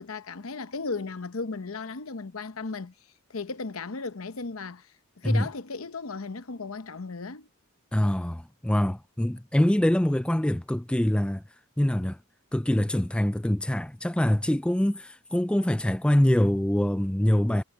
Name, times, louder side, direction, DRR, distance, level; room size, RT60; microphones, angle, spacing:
voice 1, 0.0-2.9 3.3-4.9 5.2-7.5, left 3 dB, 90° left, 0.9 m, -35 dB
voice 2, 7.9-11.4 11.8-12.2 12.5-17.6, left 1 dB, 5° left, 0.4 m, -24 dB
head